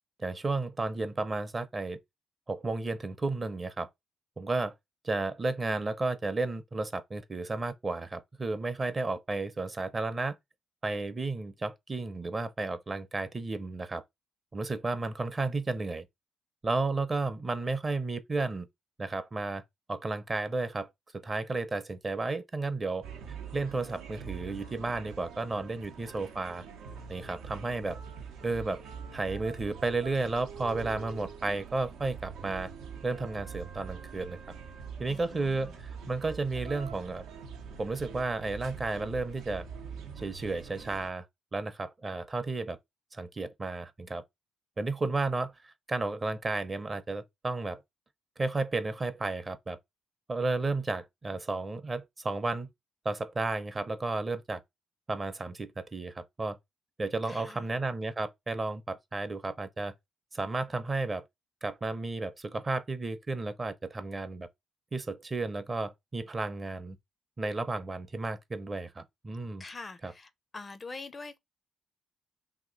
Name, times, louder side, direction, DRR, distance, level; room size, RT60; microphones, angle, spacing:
voice 1, 0.2-2.0 2.5-3.9 4.4-4.7 5.0-10.4 10.8-14.0 14.5-16.1 16.6-18.7 19.0-19.6 19.9-23.0 23.5-26.6 27.1-28.0 28.4-28.8 29.1-32.7 33.0-34.4 35.0-37.2 37.8-39.6 40.2-41.3 41.5-42.8 43.1-44.2 44.8-47.8 48.4-49.8 50.3-52.7 53.0-54.6 55.1-56.6 57.0-59.9 60.3-61.2 61.6-64.5 64.9-67.0 67.4-69.6 70.0-70.1, right 3 dB, 30° right, 0.6 m, -33 dB
sound 1, 23.0-41.1, right 6 dB, 85° right, 0.7 m, -44 dB
voice 2, 35.1-35.8 57.2-57.7 69.6-71.4, left 3 dB, 30° left, 0.4 m, -44 dB
2.9 x 2.8 x 3.8 m
cardioid pair, 90°, 0 cm